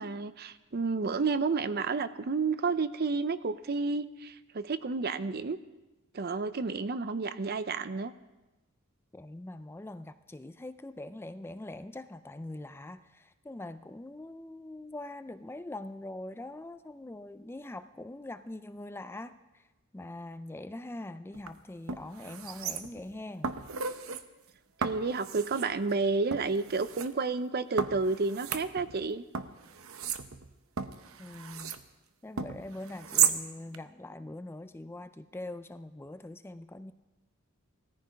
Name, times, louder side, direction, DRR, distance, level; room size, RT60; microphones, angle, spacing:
voice 1, 0.0-5.6 6.1-8.1 24.8-29.2, right 4 dB, 50° right, 13 dB, 0.6 m, -31 dB
voice 2, 9.1-19.7 19.9-23.5 31.2-31.7 32.2-36.9, left 1 dB, 10° left, 11 dB, 0.4 m, -43 dB
sound 1, 21.3-21.5 21.9-23.1 23.4-24.2 24.8-25.7 26.3-27.1 27.8-29.1 29.3-31.8 32.4-33.4 33.7-33.8, right 7 dB, 75° right, 0.8 m, -34 dB
17.0 x 14.0 x 5.2 m, 1.1 s
head